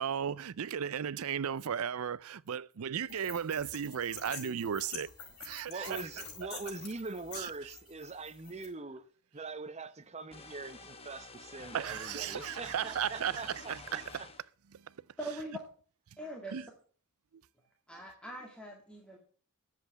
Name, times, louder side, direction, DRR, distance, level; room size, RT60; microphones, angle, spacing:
voice 1, 0.0-5.1 5.4-6.0 11.7-13.4 13.9-14.0 16.5-16.6, right 8 dB, 70° right, 0.5 m, -35 dB
sound 1, 3.1-8.7, left 5 dB, 75° left, 5.0 m, -47 dB
voice 2, 5.7-9.0 9.3-14.3, right 3 dB, 30° right, 0.9 m, -43 dB
sound 2, 10.3-14.5, left 3 dB, 25° left, 1.3 m, -49 dB
voice 3, 15.2-15.6 16.2-16.7 17.9-19.2, right 1 dB, 5° left, 2.0 m, -42 dB
10.5 x 7.7 x 7.9 m
head